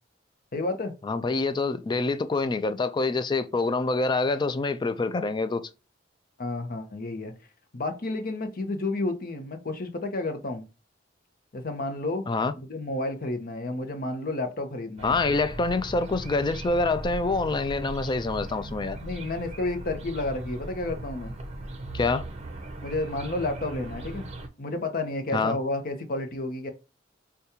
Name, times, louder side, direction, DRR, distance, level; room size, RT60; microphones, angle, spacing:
voice 1, 0.5-0.9 6.4-7.3 7.7-10.6 11.5-12.2 12.6-15.2 19.0-21.3 22.8-24.3 24.6-26.7, left 2 dB, 50° left, 0.8 m, -31 dB
voice 2, 1.0-5.7 12.3-12.5 15.0-19.0 21.9-22.3 25.3-25.6, left 3 dB, 25° left, 0.3 m, -26 dB
sound 1, 15.0-24.5, right 1 dB, 35° right, 0.6 m, -38 dB
5.0 x 2.3 x 2.8 m
head